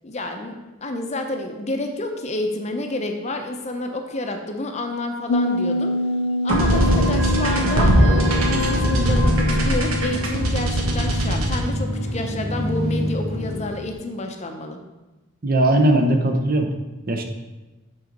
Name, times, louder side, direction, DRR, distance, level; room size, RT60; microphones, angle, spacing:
voice 1, 0.0-5.9 6.4-14.8, left 2 dB, 30° left, 5 dB, 0.6 m, -29 dB
sound 1, 5.3-13.6 13.9-14.0, left 1 dB, 90° left, 0.4 m, -28 dB
sound 2, 6.5-13.8, equal, 90° right, 1.3 m, -21 dB
voice 2, 15.4-16.7 17.1-17.2, right 1 dB, 45° right, 4 dB, 0.7 m, -18 dB
7.7 x 3.9 x 5.2 m, 1.1 s
head